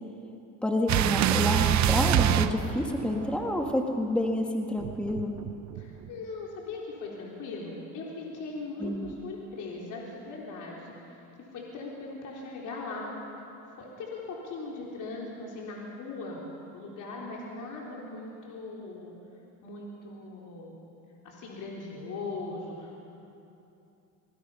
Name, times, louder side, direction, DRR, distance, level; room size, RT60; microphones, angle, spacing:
voice 1, 0.6-5.3 8.8-9.1, left 1 dB, 5° left, 2 dB, 1.6 m, -29 dB
sound 1, 0.9-3.4 4.8-6.1, right 10 dB, 50° right, 0.9 m, -25 dB
voice 2, 5.7-10.9 11.5-13.1 13.8-16.4 16.7-19.1 19.6-20.7 21.2-23.0, left 3 dB, 55° left, -3 dB, 3.9 m, -39 dB
24.0 x 20.0 x 5.7 m, 2.8 s
supercardioid pair, 110°, 36 cm